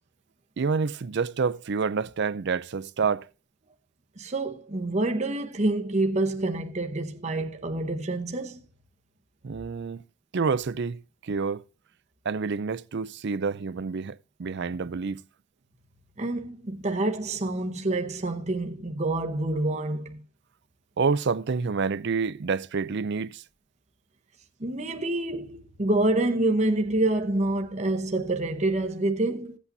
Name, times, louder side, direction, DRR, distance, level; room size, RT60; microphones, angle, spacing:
voice 1, 0.6-3.3 9.4-10.0 10.3-11.6 12.3-15.2 21.0-23.4, right 5 dB, 50° right, 0.4 m, -28 dB
voice 2, 4.2-8.6 16.2-20.2 24.6-29.6, right 2 dB, 30° right, 0.9 m, -27 dB
16.0 x 8.3 x 2.6 m
head